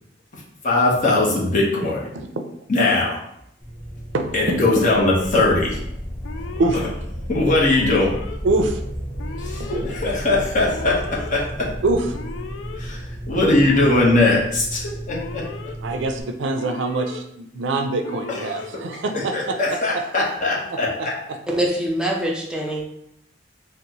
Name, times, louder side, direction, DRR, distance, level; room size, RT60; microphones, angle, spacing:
voice 1, 0.3-2.1 2.7-3.2 4.3-5.8 7.3-8.1 9.4-11.7 12.8-15.4 18.3-18.5 19.1-21.1, left 2 dB, 45° left, -3 dB, 0.8 m, -20 dB
sound 1, 3.6-16.2, equal, 30° left, 1.2 m, -33 dB
voice 2, 4.1-4.6 6.6-6.8 8.4-8.8 11.8-12.1 15.8-19.6 19.9-20.0 20.7-21.1, right 2 dB, 90° right, 6 dB, 0.4 m, -24 dB
Alarm, 4.8-5.4 6.2-6.9 7.7-8.4 9.2-9.8 10.7-11.3 12.1-12.8 13.6-14.3 15.1-15.7 16.6-17.2 18.0-18.7, left 5 dB, 80° left, 0.3 m, -37 dB
voice 3, 21.5-22.8, right 1 dB, 5° right, -2 dB, 0.5 m, -23 dB
3.9 x 2.1 x 2.8 m, 0.74 s
head